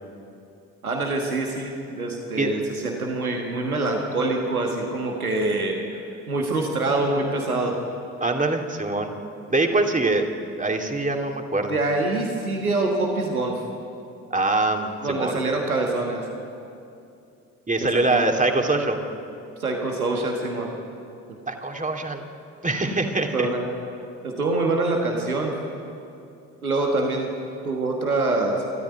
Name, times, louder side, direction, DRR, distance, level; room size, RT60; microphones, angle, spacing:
voice 1, 0.8-7.8 11.7-13.6 15.0-16.2 17.8-18.2 19.6-20.7 23.3-23.6 24.2-25.5 26.6-27.3 27.6-28.6, right 2 dB, 90° right, 1 dB, 1.5 m, -25 dB
voice 2, 8.2-9.1 9.5-10.3 10.6-11.8 14.3-15.4 17.7-19.0 21.5-22.2 22.6-23.5, right 2 dB, 20° right, 3 dB, 2.8 m, -23 dB
24.5 x 13.5 x 9.3 m, 2.6 s
figure-of-eight pair, 40°, 42 cm